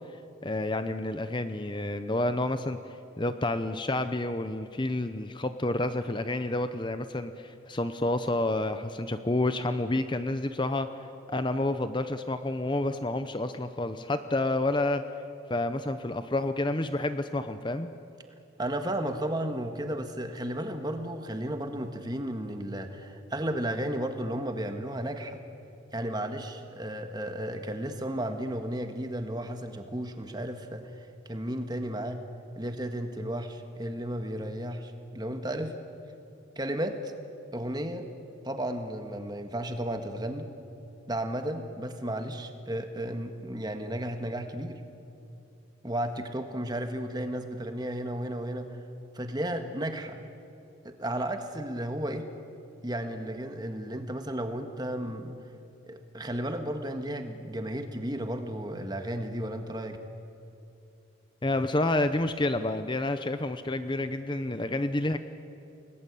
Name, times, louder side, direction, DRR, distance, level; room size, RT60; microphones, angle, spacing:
voice 1, 0.4-10.9 11.3-15.0 15.5-17.9 61.4-65.2, left 2 dB, 25° left, 10 dB, 0.7 m, -29 dB
voice 2, 18.6-25.4 25.9-32.2 32.6-35.7 36.5-37.1 37.5-38.1 38.4-40.5 41.1-44.8 45.8-48.8 49.1-50.2 50.8-52.3 52.8-55.4 55.9-60.0, right 1 dB, 20° right, 6 dB, 1.7 m, -33 dB
29.5 x 20.0 x 8.5 m, 2.7 s
head